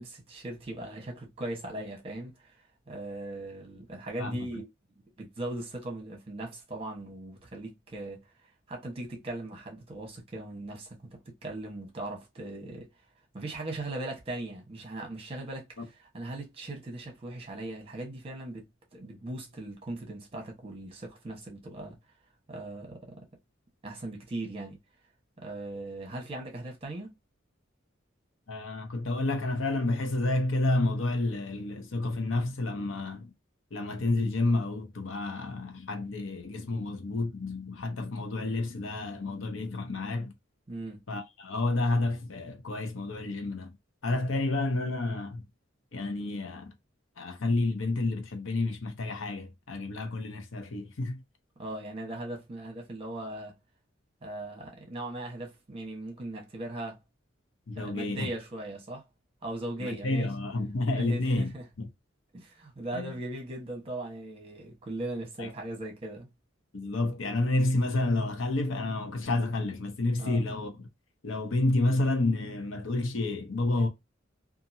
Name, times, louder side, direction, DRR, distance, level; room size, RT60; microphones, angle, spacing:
voice 1, 0.0-2.6 2.9-4.7 5.2-8.2 8.7-12.9 13.3-22.0 22.5-23.3 23.8-24.8 25.4-27.1 40.7-41.0 51.6-53.5 54.2-57.0 57.8-59.0 59.4-60.3 60.9-61.7 62.3-66.3 70.2-70.4, right 2 dB, 30° right, 1.1 m, -39 dB
voice 2, 28.5-33.3 33.7-40.3 41.1-43.7 44.0-45.4 45.9-46.7 47.2-51.2 57.7-58.3 59.8-61.5 61.8-61.9 63.0-63.1 65.4-65.5 66.7-70.7 71.2-73.9, left 2 dB, 75° left, 0.7 m, -30 dB
2.8 x 2.5 x 2.6 m
head